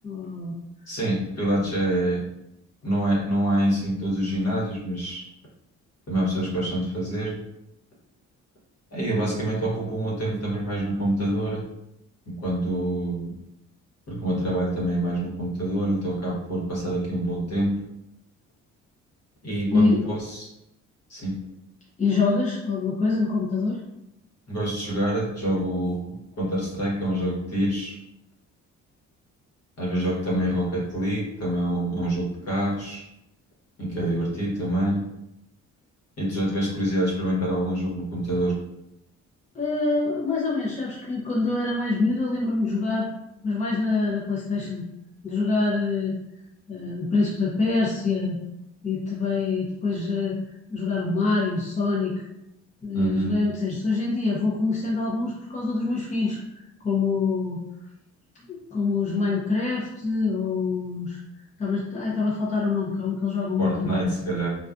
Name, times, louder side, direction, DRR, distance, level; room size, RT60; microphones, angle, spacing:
voice 1, 0.0-0.5 19.7-20.0 22.0-23.8 39.5-43.1 43.4-44.9 45.2-46.1 46.7-48.4 48.8-50.4 50.7-52.2 52.8-57.6 58.5-61.2 61.6-64.1, left 3 dB, 25° left, -4 dB, 0.5 m, -25 dB
voice 2, 0.9-2.2 2.8-5.2 6.1-7.4 8.9-11.6 12.4-13.3 14.1-17.8 19.4-20.5 21.1-21.4 24.5-28.0 29.8-33.0 33.8-35.1 36.2-38.6 52.9-53.4 63.6-64.5, right 1 dB, 55° left, -4 dB, 1.1 m, -26 dB
2.4 x 2.3 x 2.3 m, 0.85 s
cardioid pair, 90°, 30 cm